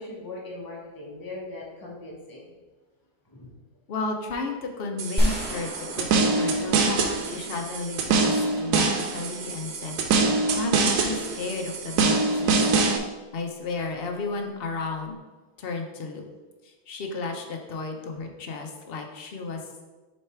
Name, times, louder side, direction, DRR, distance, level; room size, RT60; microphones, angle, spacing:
voice 1, 0.0-2.5 3.2-3.6, left 2 dB, 15° left, -3 dB, 1.0 m, -40 dB
voice 2, 3.9-12.7 13.3-15.2 15.6-16.2 16.6-19.6, left 3 dB, 50° left, 3 dB, 0.7 m, -33 dB
sound 1, 5.0-13.0, right 4 dB, 90° right, 1.2 m, -24 dB
sound 2, 5.2-8.1, equal, 5° right, 1.3 m, -29 dB
6.6 x 3.3 x 4.4 m, 1.2 s
omnidirectional pair, 1.7 m